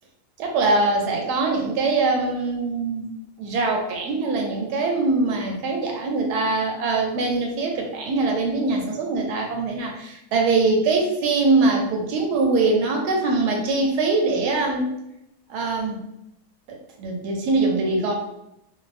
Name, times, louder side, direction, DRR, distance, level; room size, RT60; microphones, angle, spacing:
voice 1, 0.4-3.1 3.4-14.8 15.5-16.0 16.7-18.1, right 3 dB, 90° right, 1 dB, 1.2 m, -22 dB
2.6 x 2.2 x 2.4 m, 0.83 s
omnidirectional pair, 1.7 m